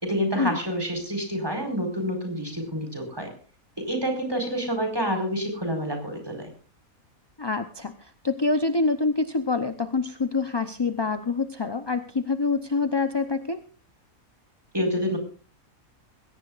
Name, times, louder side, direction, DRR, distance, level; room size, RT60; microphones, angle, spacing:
voice 1, 0.0-3.3 3.8-6.5 14.7-15.2, equal, 15° right, 4 dB, 4.9 m, -28 dB
voice 2, 7.4-13.6, left 3 dB, 25° left, 9 dB, 0.6 m, -26 dB
21.5 x 17.5 x 2.5 m, 0.39 s
omnidirectional pair, 1.5 m